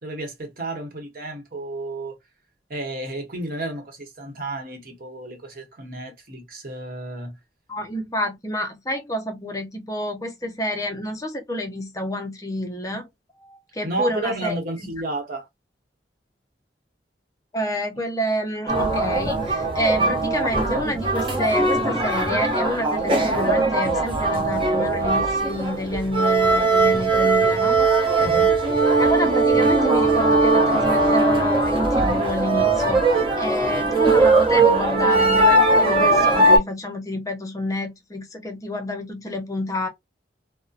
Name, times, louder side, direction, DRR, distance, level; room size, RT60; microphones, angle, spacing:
voice 1, 0.0-2.2 2.7-7.4 13.8-15.5 28.2-28.6, right 2 dB, 55° right, 0.9 m, -32 dB
voice 2, 7.7-13.1 13.4-14.5 17.5-27.8 29.0-39.9, equal, 20° left, 0.5 m, -28 dB
sound 1, 18.7-36.6, right 2 dB, 30° right, 0.7 m, -19 dB
2.6 x 2.1 x 2.3 m
head